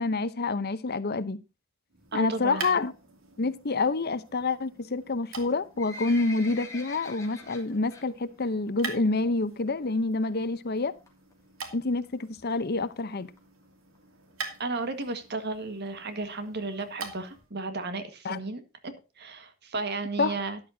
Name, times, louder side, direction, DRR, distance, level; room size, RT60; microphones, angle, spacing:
voice 1, 0.0-1.4 2.1-2.9 3.4-10.9 11.7-13.3 18.2-18.4 20.2-20.4, left 3 dB, 50° left, 0.8 m, -27 dB
sound 1, 1.9-17.5, right 4 dB, 90° right, 2.6 m, -45 dB
voice 2, 2.1-2.7 14.6-20.6, right 3 dB, 55° right, 1.7 m, -34 dB
Livestock farm animals working animals, 5.5-8.1 8.4-8.7 9.0-9.1 9.8-9.9 10.1-10.2 10.4-10.5 11.1-11.3 11.9-12.0 12.2-12.3 12.5-12.6 12.8-12.9 13.4-13.5 13.9-14.0 14.5-14.6, left 3 dB, 15° left, 3.0 m, -43 dB
13.0 x 10.5 x 2.7 m
head